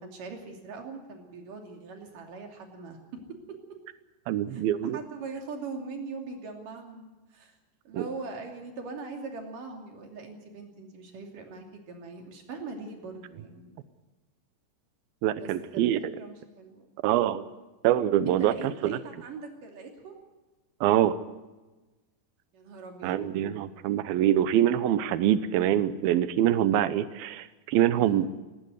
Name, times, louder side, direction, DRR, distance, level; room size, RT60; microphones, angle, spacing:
voice 1, 0.0-3.2 3.5-3.6 4.5-7.0 7.3-7.5 7.9-13.8 15.4-16.9 18.3-20.2 22.5-23.2 28.0-28.3, right 4 dB, 50° right, 3 dB, 4.1 m, -41 dB
voice 2, 4.3-5.0 8.0-8.1 15.2-16.0 17.0-17.4 17.8-19.0 20.8-21.1 23.0-28.3, right 11 dB, 75° right, 14 dB, 2.3 m, -24 dB
17.5 x 17.0 x 9.4 m, 1.1 s
omnidirectional pair, 5.0 m